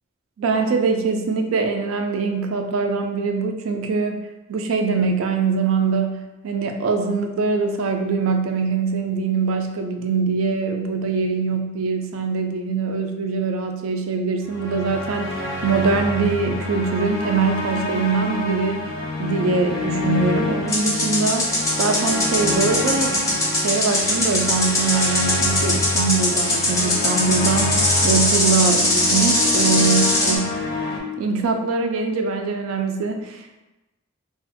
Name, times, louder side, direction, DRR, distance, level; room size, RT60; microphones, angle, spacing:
voice 1, 0.4-18.9 19.2-30.6 31.2-33.6, right 4 dB, 80° right, 5 dB, 0.3 m, -23 dB
sound 1, 14.5-31.0, left 2 dB, 75° left, 0.6 m, -27 dB
sound 2, 20.7-30.4, left 1 dB, 15° left, 0.5 m, -21 dB
2.5 x 2.3 x 2.5 m, 1.0 s
head